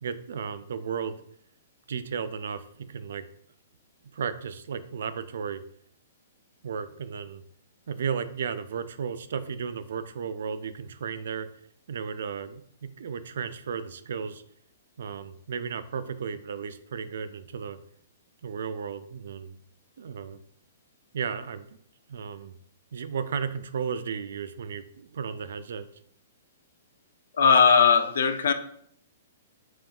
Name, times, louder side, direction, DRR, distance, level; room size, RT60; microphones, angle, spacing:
voice 1, 0.0-1.2 1.9-3.3 4.1-5.6 6.6-7.4 7.9-11.5 11.9-14.4 15.0-17.8 18.4-19.6 20.0-20.4 21.1-21.8 22.1-22.5 22.9-25.9, right 6 dB, 70° right, 12 dB, 0.3 m, -34 dB
voice 2, 27.3-28.5, left 6 dB, 70° left, 9 dB, 0.4 m, -19 dB
5.2 x 3.0 x 2.3 m, 0.67 s
hypercardioid pair, 165°, 0 cm